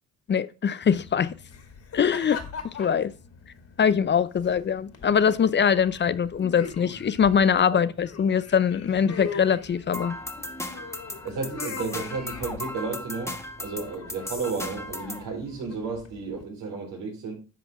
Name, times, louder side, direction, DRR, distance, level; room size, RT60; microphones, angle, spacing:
voice 1, 0.3-1.3 1.9-2.4 2.8-3.1 3.8-10.2, left 7 dB, 35° left, 0.6 m, -22 dB
sound 1, 0.8-16.4, left 5 dB, 55° left, 2.2 m, -42 dB
sound 2, 9.9-15.3, left 1 dB, 10° left, 1.3 m, -36 dB
voice 2, 11.2-17.3, right 4 dB, 85° right, 4.1 m, -33 dB
10.5 x 5.9 x 3.6 m
cardioid pair, 90°, 30 cm